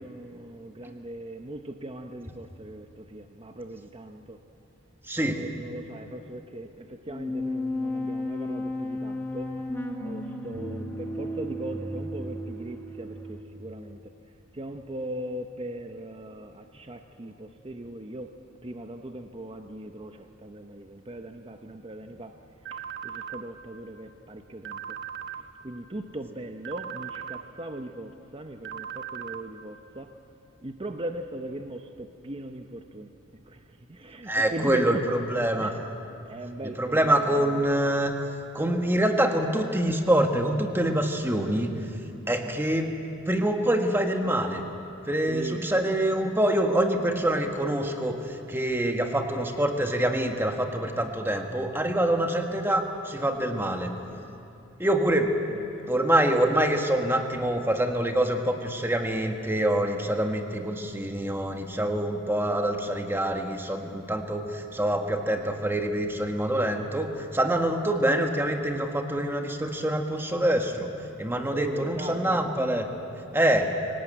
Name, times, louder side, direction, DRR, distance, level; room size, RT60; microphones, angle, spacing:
voice 1, 0.0-4.4 5.1-9.7 10.0-14.1 14.5-18.3 18.6-22.4 22.7-25.0 25.3-30.2 30.6-33.1 33.5-35.1 35.6-35.9 36.3-37.6 41.7-41.9 42.4-42.6 45.3-45.7 47.0-47.5 54.1-54.4 55.5-56.1 71.5-72.5, right 1 dB, 25° right, 6 dB, 0.8 m, -39 dB
voice 2, 5.1-5.4 34.3-35.7 36.8-38.1 38.5-41.7 42.3-42.9 43.2-44.6 45.1-53.9 54.8-55.3 55.9-70.9 71.2-72.9 73.3-73.7, right 1 dB, 10° right, 4 dB, 1.5 m, -25 dB
sound 1, 7.1-13.4, left 1 dB, 10° left, 1.6 m, -33 dB
sound 2, 22.7-23.4 24.7-25.4 26.7-27.4 28.7-29.4, right 8 dB, 60° right, 1.0 m, -37 dB
24.5 x 17.5 x 9.0 m, 2.7 s
head